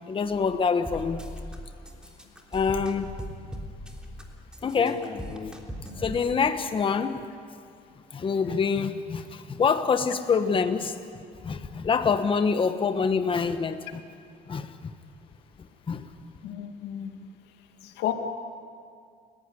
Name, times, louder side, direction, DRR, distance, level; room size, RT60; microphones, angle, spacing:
voice 1, 0.1-1.2 2.5-3.1 4.6-5.6 6.0-7.3 8.1-11.0 11.4-14.0 14.5-14.7 15.9-16.1, left 5 dB, 30° left, 8 dB, 1.2 m, -26 dB
sound 1, 0.9-1.6 1.8-4.2 4.5-6.2, equal, 5° right, 3.3 m, -39 dB
voice 2, 16.4-17.2 17.8-18.1, left 12 dB, 90° left, 6 dB, 2.2 m, -32 dB
29.5 x 15.5 x 9.7 m, 2.3 s
cardioid pair, 110°, 17 cm